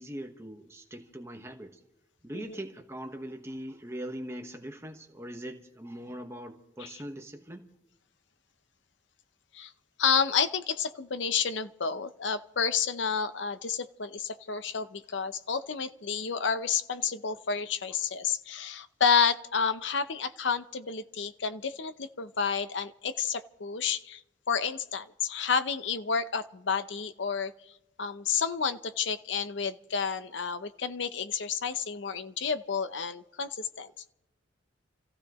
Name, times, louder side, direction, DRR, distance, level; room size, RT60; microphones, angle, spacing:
voice 1, 0.0-1.8 2.2-7.7, right 1 dB, 15° right, 4 dB, 1.2 m, -41 dB
voice 2, 10.0-24.2 24.5-27.5 28.0-33.9, left 6 dB, 70° left, 12 dB, 0.8 m, -30 dB
28.5 x 15.5 x 3.1 m, 0.87 s
head